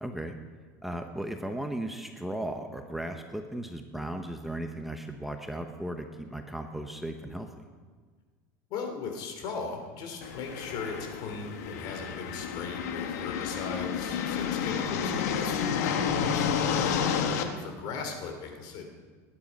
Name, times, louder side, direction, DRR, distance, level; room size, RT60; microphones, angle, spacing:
voice 1, 0.0-0.3 0.8-7.6, right 1 dB, ahead, 4 dB, 1.0 m, -36 dB
voice 2, 8.7-16.5 17.3-18.8, left 5 dB, 55° left, 4 dB, 3.1 m, -38 dB
sound 1, 10.2-17.4, left 7 dB, 90° left, 1.5 m, -30 dB
20.0 x 10.0 x 5.4 m, 1.5 s
supercardioid pair, 130°, 8 cm